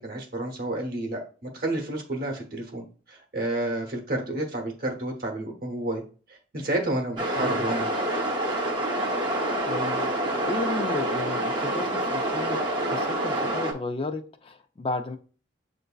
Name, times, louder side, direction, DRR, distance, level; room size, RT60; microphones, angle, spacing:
voice 1, 0.0-6.0 6.5-7.9, right 1 dB, 50° right, 0.9 m, -30 dB
sound 1, 7.2-13.7, right 1 dB, 25° right, 0.7 m, -27 dB
voice 2, 7.4-7.7 9.6-15.2, left 3 dB, 30° left, 0.4 m, -34 dB
7.7 x 2.6 x 2.3 m
head